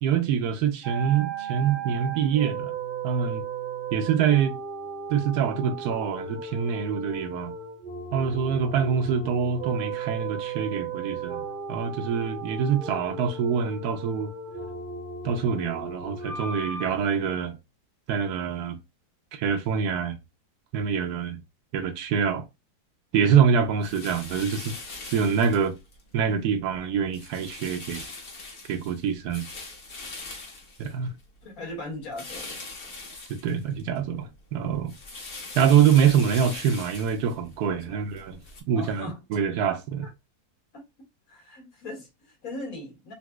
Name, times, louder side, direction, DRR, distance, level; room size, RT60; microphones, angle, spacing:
voice 1, 0.0-2.8 3.0-3.4 3.9-4.5 5.1-7.5 8.1-11.4 11.7-14.3 15.2-17.6 18.1-18.8 19.3-20.2 20.7-21.4 21.7-22.4 23.1-24.7 25.0-25.8 26.1-28.0 28.7-29.5 30.8-31.1 33.3-34.9 35.5-38.4 38.7-40.1, right 7 dB, 85° right, 1.2 m, -25 dB
sound 1, 0.8-16.9, right 5 dB, 50° right, 0.7 m, -36 dB
sound 2, 23.8-26.0 26.4-26.8 27.1-31.4 32.1-34.0 34.3-38.6, left 3 dB, 45° left, 1.0 m, -41 dB
voice 2, 31.4-32.6 37.9-38.0 38.8-39.4 40.0-40.1 40.7-40.8 41.3-43.1, left 2 dB, 65° left, 1.6 m, -39 dB
3.9 x 2.7 x 2.2 m
omnidirectional pair, 1.7 m